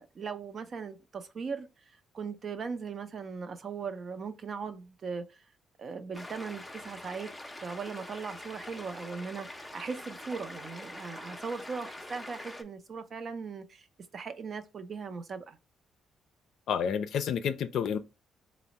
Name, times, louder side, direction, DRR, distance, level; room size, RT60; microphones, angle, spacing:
voice 1, 0.0-1.7 2.1-5.4 5.8-7.3 7.6-13.9 14.1-15.6, right 5 dB, 50° right, 0.5 m, -39 dB
sound 1, 6.1-12.6, left 1 dB, 10° left, 0.5 m, -44 dB
voice 2, 16.7-18.0, left 7 dB, 75° left, 0.4 m, -29 dB
3.3 x 2.0 x 4.0 m
cardioid pair, 90°, 0 cm